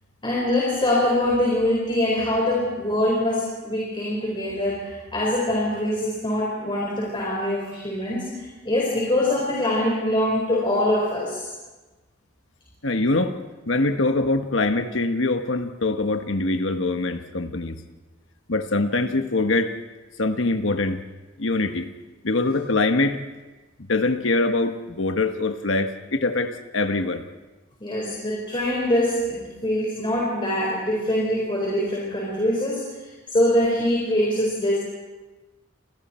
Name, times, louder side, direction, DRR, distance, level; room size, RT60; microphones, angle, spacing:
voice 1, 0.2-11.5 27.8-34.8, left 1 dB, 25° left, -3 dB, 4.9 m, -24 dB
voice 2, 12.8-13.4 13.7-17.8 18.5-19.7 20.2-21.0 21.4-21.9 22.2-23.2 23.9-27.2, left 2 dB, 70° left, 7 dB, 1.4 m, -23 dB
29.0 x 27.0 x 4.4 m, 1.2 s
head